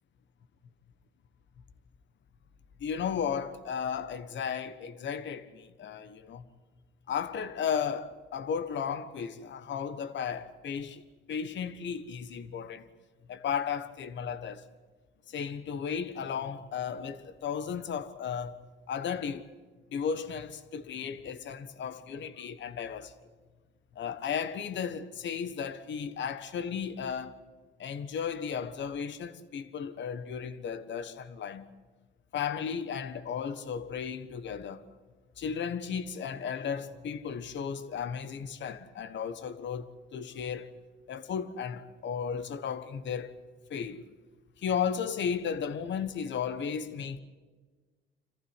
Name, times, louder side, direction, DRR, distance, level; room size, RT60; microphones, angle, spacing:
voice 1, 2.8-6.4 7.1-11.0 11.3-12.9 13.3-14.6 15.3-18.6 18.9-19.5 19.9-23.1 23.9-27.4 27.8-31.7 32.3-34.8 35.4-40.7 41.1-43.4 43.7-44.1 44.6-47.2, left 7 dB, 65° left, 1.4 m, -34 dB
26.5 x 15.0 x 9.7 m
cardioid pair, 90°, 20 cm